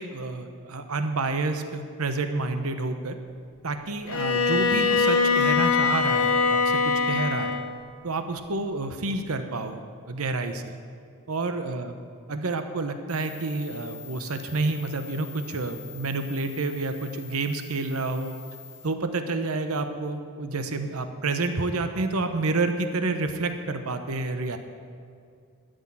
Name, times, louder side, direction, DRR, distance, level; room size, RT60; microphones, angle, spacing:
voice 1, 0.0-3.1 3.6-6.8 7.1-7.5 8.0-10.7 11.3-12.0 12.3-18.4 18.8-24.6, right 3 dB, 85° right, 7 dB, 0.9 m, -29 dB
Bowed string instrument, 4.1-7.8, left 5 dB, 80° left, 0.8 m, -23 dB
sound 1, 13.1-18.9, left 8 dB, 55° left, 2.8 m, -45 dB
12.5 x 6.4 x 8.6 m, 2.3 s
head